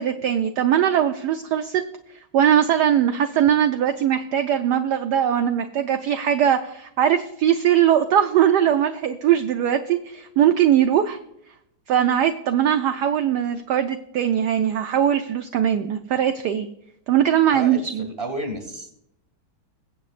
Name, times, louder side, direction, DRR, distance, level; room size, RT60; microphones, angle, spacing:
voice 1, 0.0-1.8 2.3-11.2 11.9-16.7 17.1-18.1, right 10 dB, 70° right, 8 dB, 1.1 m, -20 dB
voice 2, 17.5-18.9, right 1 dB, 15° right, 4 dB, 1.8 m, -32 dB
22.5 x 7.8 x 2.5 m, 0.77 s
omnidirectional pair, 2.2 m